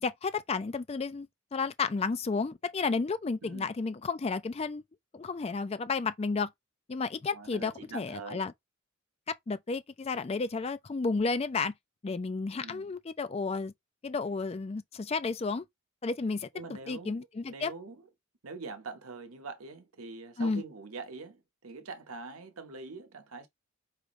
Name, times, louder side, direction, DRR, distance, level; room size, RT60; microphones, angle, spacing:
voice 1, 0.0-4.8 5.1-6.5 6.9-8.5 9.3-11.7 12.0-13.7 14.0-15.6 16.0-16.5 16.9-17.7 20.4-20.6, left 4 dB, 30° left, 0.3 m, -32 dB
voice 2, 7.3-8.5 12.6-12.9 16.5-18.1 18.4-23.5, right 3 dB, 85° right, 1.0 m, -44 dB
4.9 x 2.6 x 3.0 m
head